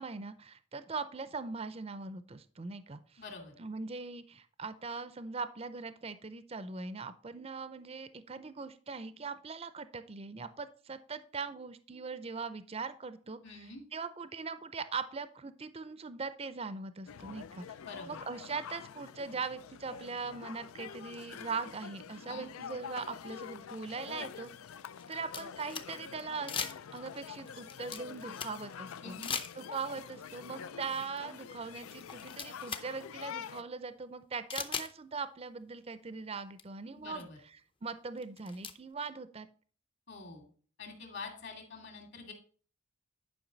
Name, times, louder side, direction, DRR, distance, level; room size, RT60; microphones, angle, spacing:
voice 1, 0.0-3.2 3.6-17.6 18.1-24.5 25.1-29.2 29.6-37.3 37.8-39.5, right 4 dB, 30° right, 12 dB, 0.5 m, -41 dB
voice 2, 3.2-3.5 13.4-13.8 17.8-18.2 22.2-22.5 29.0-29.4 36.9-37.4 40.1-40.4 40.8-42.3, left 4 dB, 55° left, 2 dB, 2.6 m, -46 dB
sound 1, 17.1-33.6, left 7 dB, 80° left, 0.4 m, -46 dB
sound 2, 23.4-23.5 24.4-26.2 26.5-27.1 27.5-28.7 29.2-29.9 31.3-31.4 31.9-32.9 33.2-33.3 34.5-34.9 36.2-36.3 36.6-36.7 37.2-37.3 38.2-38.7, left 5 dB, 25° left, 0.6 m, -39 dB
10.5 x 5.5 x 4.0 m, 0.42 s
head